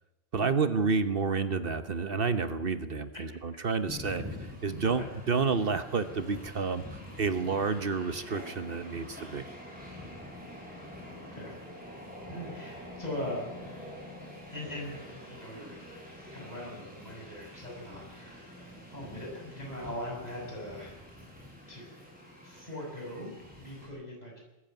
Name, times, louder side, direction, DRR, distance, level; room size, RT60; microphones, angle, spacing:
voice 1, 0.3-4.2 4.6-9.4, right 4 dB, 60° right, 11 dB, 1.1 m, -30 dB
Train, 3.9-23.9, left 1 dB, 10° right, 6.8 m, -46 dB
voice 2, 12.3-13.5 14.5-15.9 16.2-21.1 21.7-22.0 22.4-24.3, left 1 dB, 40° left, -1 dB, 7.0 m, -41 dB
20.0 x 14.5 x 9.3 m, 1.0 s
omnidirectional pair, 1.1 m